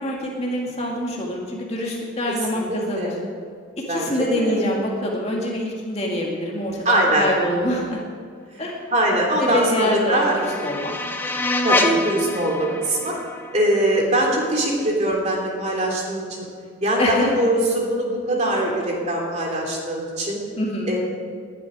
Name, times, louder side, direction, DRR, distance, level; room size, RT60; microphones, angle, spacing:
voice 1, 0.0-3.1 3.9-8.0 8.6-8.8 9.4-10.9 17.0-17.3 20.6-20.9, left 1 dB, 30° left, -2 dB, 2.4 m, -25 dB
voice 2, 2.5-3.2 3.9-4.6 6.8-7.3 8.6-10.4 10.6-10.7 11.6-13.1 13.5-16.4 16.8-20.4 20.9-21.0, right 1 dB, 35° right, -1 dB, 2.9 m, -22 dB
sound 1, 9.6-14.5, left 2 dB, 10° left, 0.7 m, -27 dB
20.0 x 11.5 x 5.1 m, 2.1 s
head